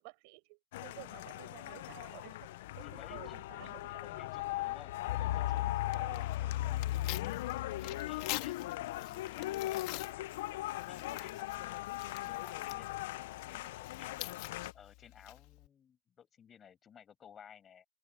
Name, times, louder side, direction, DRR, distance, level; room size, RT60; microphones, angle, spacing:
voice 1, 0.0-3.8 4.2-4.3 5.9-6.3 7.8-8.2, right 33 dB, 50° right, 6.9 m, -53 dB
sound 1, 0.7-14.7, left 16 dB, 65° left, 0.5 m, -38 dB
voice 2, 2.8-7.2 7.7-10.3 10.9-12.9 13.5-14.4 14.7-17.9, left 8 dB, 20° left, 6.2 m, -58 dB
Tearing, 4.9-15.7, left 21 dB, 50° left, 1.6 m, -47 dB
open air
supercardioid pair, 160°, 0 cm